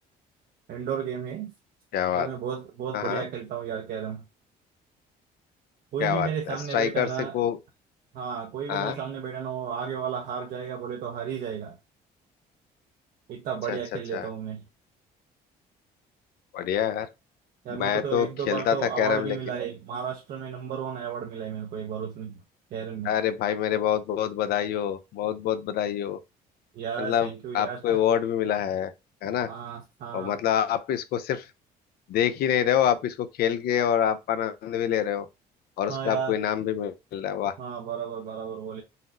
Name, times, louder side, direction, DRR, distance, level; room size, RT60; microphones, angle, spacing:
voice 1, 0.7-1.5 2.1-4.2 5.9-7.4 8.1-11.8 13.3-14.6 17.6-22.4 22.7-23.1 26.7-28.0 29.5-30.4 35.9-36.4 37.6-38.8, right 7 dB, 60° right, 0.5 m, -33 dB
voice 2, 1.9-2.3 2.9-3.2 6.0-7.1 7.3-7.6 8.7-9.0 13.7-13.8 14.1-14.3 16.5-17.1 17.8-19.4 23.0-26.2 27.0-27.3 27.5-28.9 29.2-29.5 30.1-31.5 32.1-35.3 35.8-37.5, left 10 dB, 70° left, 0.5 m, -26 dB
4.0 x 2.0 x 2.5 m
cardioid pair, 110°, 17 cm